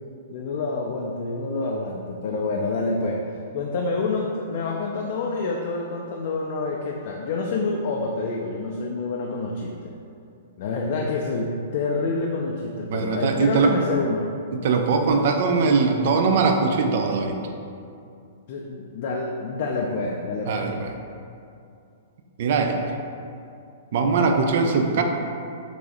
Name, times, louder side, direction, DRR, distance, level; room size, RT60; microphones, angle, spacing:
voice 1, 0.3-3.2 3.5-9.9 10.6-14.3 18.5-20.7, left 3 dB, 55° left, -1 dB, 0.3 m, -27 dB
voice 2, 12.9-13.7 14.5-17.4 20.5-20.9 22.4-22.8 23.9-25.0, right 4 dB, 60° right, 4 dB, 0.3 m, -21 dB
3.9 x 2.4 x 2.8 m, 2.5 s
hypercardioid pair, 125°, 0 cm